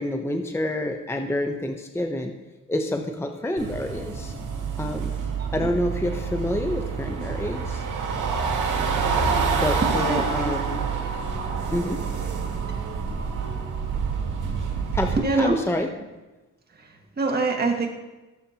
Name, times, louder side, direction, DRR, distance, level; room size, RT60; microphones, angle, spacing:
voice 1, 0.0-2.3 2.7-4.3 4.8-5.1 5.5-7.8 9.6-10.8 11.7-12.0 14.9-15.9, left 1 dB, 10° left, 4 dB, 0.7 m, -28 dB
sound 1, 3.6-15.2, right 5 dB, 75° right, 2.1 m, -27 dB
voice 2, 9.8-10.5 15.2-15.8 16.8-17.9, right 3 dB, 30° right, 2 dB, 1.7 m, -26 dB
17.5 x 7.5 x 2.9 m, 1.1 s
cardioid pair, 95°, 32 cm